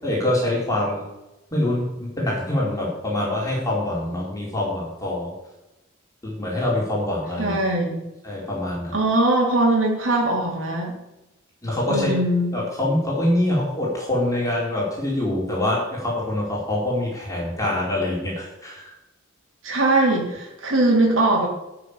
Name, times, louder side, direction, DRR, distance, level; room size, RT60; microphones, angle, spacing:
voice 1, 0.0-1.0 1.5-5.3 6.2-7.5 8.2-8.9 11.6-12.1 12.5-18.9, left 1 dB, 15° left, -4 dB, 4.7 m, -25 dB
voice 2, 7.4-8.0 8.9-10.9 11.9-12.5 19.6-21.5, right 2 dB, 75° right, -2 dB, 3.8 m, -21 dB
12.5 x 6.7 x 8.9 m, 0.97 s
head